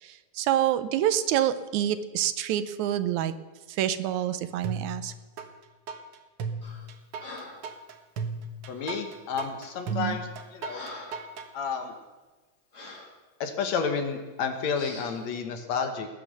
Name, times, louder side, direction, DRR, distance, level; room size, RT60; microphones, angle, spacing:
voice 1, 0.0-3.3 3.7-5.1 9.9-10.2, right 11 dB, 80° right, 12 dB, 2.1 m, -27 dB
sound 1, 4.6-5.5 5.9-11.5, right 4 dB, 60° right, 1.7 m, -35 dB
Breathing, 6.6-6.9 7.2-7.7 8.7-9.0 9.7-9.9 10.3-11.3 11.8-11.9 12.7-13.1 13.9-14.1 14.7-15.2, left 2 dB, 35° left, 2.8 m, -44 dB
voice 2, 8.7-10.8 11.5-11.9 13.4-16.1, left 5 dB, 65° left, 6 dB, 2.5 m, -31 dB
19.0 x 9.4 x 6.7 m, 1.2 s
omnidirectional pair, 3.4 m